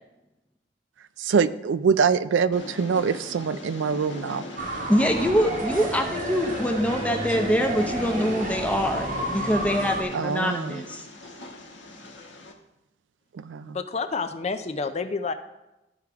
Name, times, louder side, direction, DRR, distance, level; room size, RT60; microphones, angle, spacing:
voice 1, 1.2-4.4 10.1-10.8 13.3-13.8, right 6 dB, 85° right, 14 dB, 0.4 m, -24 dB
Train, 2.5-12.5, left 1 dB, 85° left, 1.3 m, -39 dB
sound 1, 4.6-10.0, right 1 dB, 45° right, 1.1 m, -31 dB
voice 2, 4.9-11.0, equal, 10° left, 4 dB, 0.7 m, -24 dB
voice 3, 13.6-15.3, left 4 dB, 35° left, 9 dB, 0.5 m, -29 dB
13.5 x 4.7 x 3.5 m, 0.95 s
head